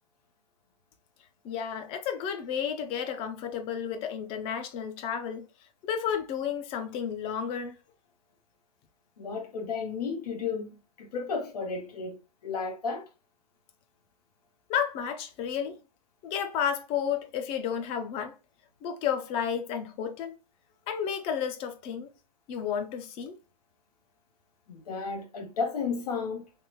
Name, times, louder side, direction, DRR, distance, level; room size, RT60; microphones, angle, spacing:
voice 1, 1.4-5.5 5.8-7.8 14.7-15.8 16.2-18.3 18.8-20.4 20.9-22.1 22.5-23.4, left 8 dB, 30° left, 0.6 m, -32 dB
voice 2, 9.2-12.2 12.4-13.1 24.7-26.5, left 5 dB, 75° left, 0.8 m, -33 dB
3.4 x 3.0 x 2.9 m
hypercardioid pair, 140°, 20 cm